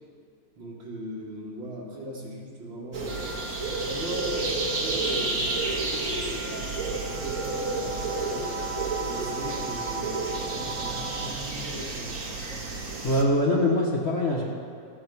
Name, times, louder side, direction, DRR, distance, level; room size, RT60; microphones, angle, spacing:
voice 1, 0.6-3.3 3.8-8.5 9.0-10.2 10.5-12.2, right 1 dB, 65° right, -4 dB, 3.1 m, -39 dB
sound 1, 2.9-13.2, right 3 dB, 45° right, 1.6 m, -31 dB
sound 2, 3.1-11.3, right 3 dB, 25° right, 0.7 m, -38 dB
voice 2, 13.0-14.4, left 1 dB, 35° left, -3 dB, 1.5 m, -23 dB
15.0 x 9.2 x 6.1 m, 2.3 s
omnidirectional pair, 2.3 m